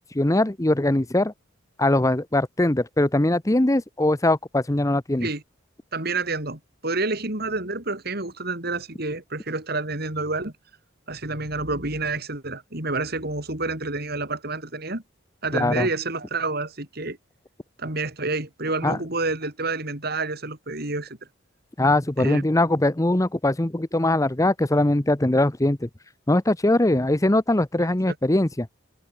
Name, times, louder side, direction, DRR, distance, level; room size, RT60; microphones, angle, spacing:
voice 1, 0.0-1.3 1.8-5.3 15.5-15.9 18.8-19.0 21.8-25.9 26.3-28.7, left 1 dB, 15° left, 0.8 m, -21 dB
voice 2, 5.9-10.5 11.1-15.0 15.4-17.2 17.8-21.2 22.2-22.4 28.1-28.2, right 3 dB, 55° right, 4.7 m, -29 dB
head